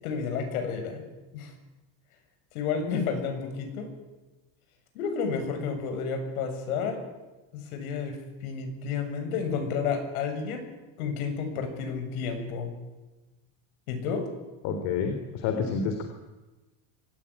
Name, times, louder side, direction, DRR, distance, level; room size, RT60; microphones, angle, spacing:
voice 1, 0.0-1.0 1.3-1.5 2.5-3.9 4.9-7.0 7.5-10.7 11.0-12.7 13.9-14.3, left 5 dB, 90° left, 5 dB, 7.4 m, -31 dB
voice 2, 14.6-16.0, left 6 dB, 50° left, 6 dB, 3.6 m, -29 dB
25.5 x 19.0 x 10.0 m, 1.1 s
cardioid pair, 175°, 42 cm